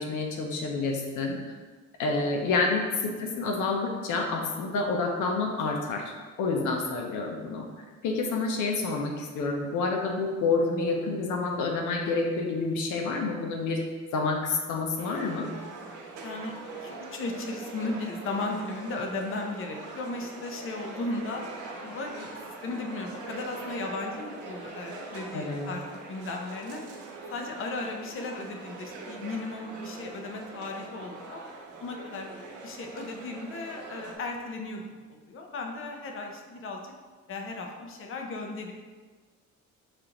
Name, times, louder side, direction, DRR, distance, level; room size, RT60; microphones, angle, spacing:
voice 1, 0.0-1.4 2.0-6.0 6.4-13.8 14.1-15.5 25.3-25.8, left 3 dB, 85° left, 2 dB, 0.7 m, -28 dB
sound 1, 15.0-34.2, right 3 dB, 75° right, 1.0 m, -43 dB
voice 2, 16.2-16.5 16.8-21.4 21.8-22.4 22.6-26.8 27.3-31.4 31.8-32.4 32.6-34.8 35.1-36.9 37.3-38.7, left 2 dB, 45° left, 2 dB, 0.6 m, -36 dB
6.5 x 2.5 x 2.9 m, 1.4 s
cardioid pair, 90°, 30 cm